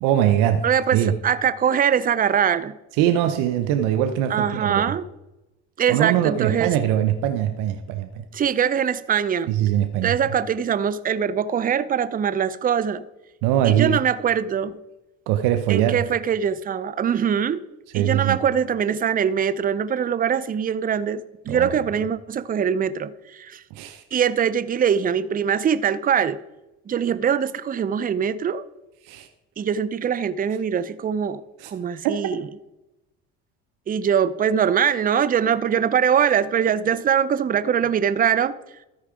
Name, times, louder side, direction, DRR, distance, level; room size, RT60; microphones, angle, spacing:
voice 1, 0.0-0.6 0.9-1.1 3.0-4.8 5.9-8.1 9.5-10.2 13.4-14.0 15.3-16.0 17.9-18.4 21.5-21.7 23.7-24.0 29.0-29.3 31.6-31.7, right 11 dB, 80° right, 0.7 m, -21 dB
voice 2, 0.6-2.7 4.3-5.1 5.8-6.7 8.3-9.5 10.0-13.0 13.6-14.8 15.7-17.6 17.9-23.6 24.1-26.4 26.9-28.7 29.6-32.5 33.9-38.6, right 8 dB, 30° right, 0.5 m, -22 dB
13.0 x 4.7 x 4.9 m
supercardioid pair, 80°, 31 cm